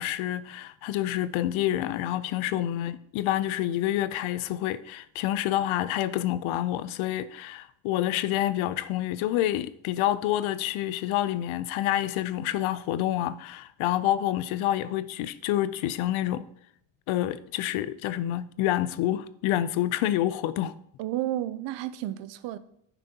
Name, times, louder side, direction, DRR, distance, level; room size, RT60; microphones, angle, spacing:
voice 1, 0.0-16.5 17.1-20.8, left 13 dB, 85° left, 0.6 m, -28 dB
voice 2, 21.0-22.6, right 13 dB, 65° right, 0.6 m, -32 dB
10.0 x 6.1 x 2.8 m
cardioid pair, 135°, 47 cm